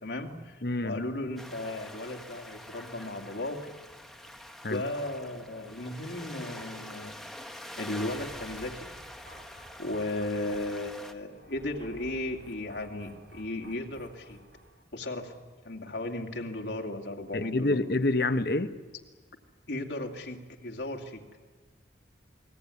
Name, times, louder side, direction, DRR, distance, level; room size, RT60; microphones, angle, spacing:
voice 1, 0.0-3.7 4.7-7.2 7.8-8.9 9.8-14.4 14.9-15.3 15.6-17.8 19.7-21.2, left 1 dB, 70° left, 2.4 m, -35 dB
voice 2, 0.6-1.0 4.6-4.8 17.3-18.7, left 2 dB, 55° left, 1.1 m, -27 dB
sound 1, 1.4-11.1, left 1 dB, ahead, 1.4 m, -45 dB
sound 2, 8.0-14.8, right 1 dB, 85° right, 2.7 m, -53 dB
29.0 x 21.0 x 9.7 m
head